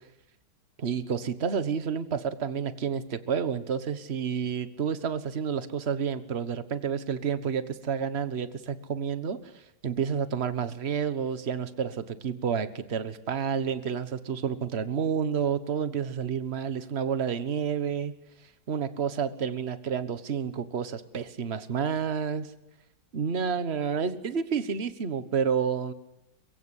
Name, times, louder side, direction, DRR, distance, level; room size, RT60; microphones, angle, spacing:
voice 1, 0.8-9.4 9.8-18.1 18.7-22.5 23.1-25.9, right 7 dB, 40° right, 12 dB, 1.5 m, -30 dB
23.5 x 23.0 x 9.9 m, 0.86 s
omnidirectional pair, 1.9 m